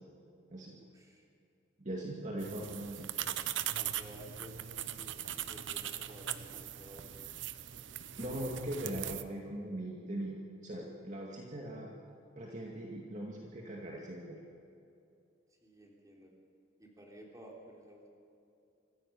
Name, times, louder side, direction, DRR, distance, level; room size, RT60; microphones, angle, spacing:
voice 1, 0.8-1.3 3.7-7.1 15.6-16.3 16.8-18.1, right 1 dB, 20° right, -1 dB, 3.5 m, -54 dB
voice 2, 1.8-3.1 8.2-10.3 10.6-11.9 12.4-14.4, right 1 dB, 40° right, -2 dB, 2.2 m, -40 dB
sound 1, 2.4-9.2, right 11 dB, 70° right, 0.8 m, -40 dB
25.0 x 15.0 x 7.0 m, 2.6 s
head